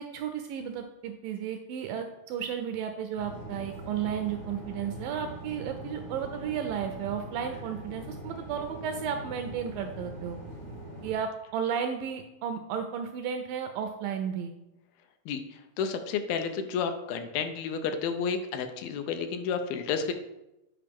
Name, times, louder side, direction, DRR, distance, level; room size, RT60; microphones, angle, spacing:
voice 1, 0.0-10.4 11.0-14.5, right 8 dB, 85° right, 6 dB, 2.0 m, -33 dB
sound 1, 3.1-11.1, right 1 dB, 55° left, 0.7 m, -42 dB
voice 2, 15.3-20.1, left 6 dB, 80° left, 7 dB, 2.4 m, -31 dB
8.6 x 4.9 x 3.4 m, 0.93 s
omnidirectional pair, 4.3 m